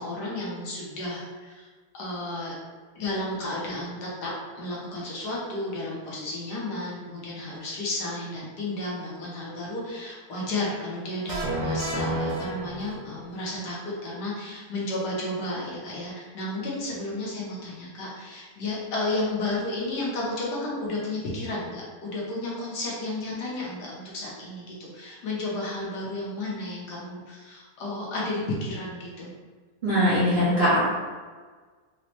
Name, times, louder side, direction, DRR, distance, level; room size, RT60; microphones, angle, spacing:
voice 1, 0.0-1.7 1.9-2.6 2.9-4.3 4.5-29.3, left 2 dB, 70° left, -5 dB, 1.4 m, -32 dB
sound 1, 11.3-13.3, right 1 dB, 85° right, 1.2 m, -30 dB
voice 2, 29.8-30.8, equal, 45° right, -10 dB, 0.8 m, -21 dB
4.0 x 2.1 x 2.9 m, 1.4 s
omnidirectional pair, 1.9 m